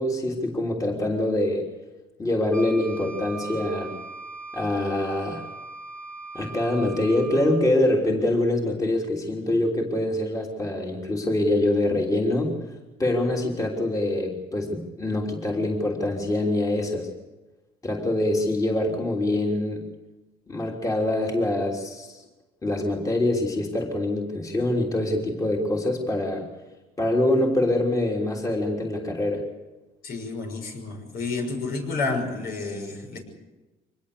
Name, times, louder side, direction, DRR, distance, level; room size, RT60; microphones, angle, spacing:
voice 1, 0.0-1.7 2.2-4.0 4.5-5.4 6.3-12.6 13.0-17.1 17.8-19.9 20.5-22.2 22.6-26.5 27.0-29.5, left 1 dB, 20° left, 0 dB, 3.3 m, -24 dB
Wind instrument woodwind instrument, 2.5-7.7, right 3 dB, 5° left, 2.5 m, -40 dB
voice 2, 30.0-33.2, left 3 dB, 65° left, 3 dB, 6.4 m, -30 dB
24.5 x 20.0 x 6.9 m, 1.1 s
cardioid pair, 110°, 17 cm